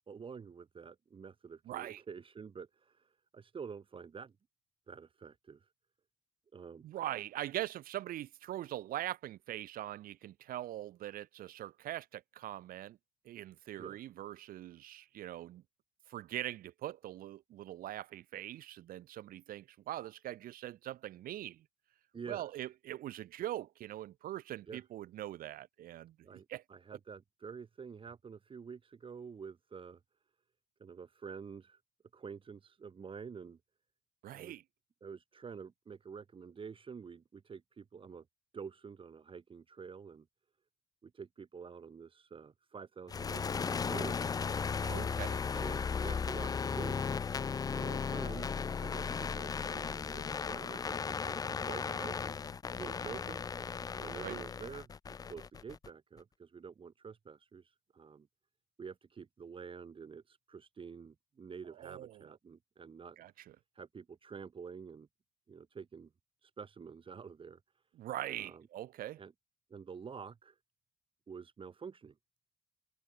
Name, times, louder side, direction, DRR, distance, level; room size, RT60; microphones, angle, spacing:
voice 1, 0.1-4.3 4.9-5.7 6.5-6.9 13.8-14.0 22.1-22.6 24.7-24.8 26.2-30.0 30.8-31.8 32.1-33.6 34.3-34.6 35.0-38.2 38.5-40.2 41.0-44.2 45.5-47.0 47.7-52.2 52.8-53.4 54.0-58.3 58.8-63.2 63.7-65.1 65.5-66.1 66.4-67.6 68.4-68.6 69.2-69.3 69.7-70.6 71.3-72.1, right 6 dB, 30° right, 1.7 m, -48 dB
voice 2, 1.7-2.0 6.8-13.0 13.2-15.6 16.1-21.7 22.3-26.6 34.2-34.6 44.8-45.4 54.2-54.4 61.8-62.3 63.2-63.6 68.0-69.2, right 13 dB, 60° right, 0.6 m, -42 dB
sound 1, 43.1-55.9, left 6 dB, 20° left, 0.4 m, -36 dB
cardioid pair, 110°, 17 cm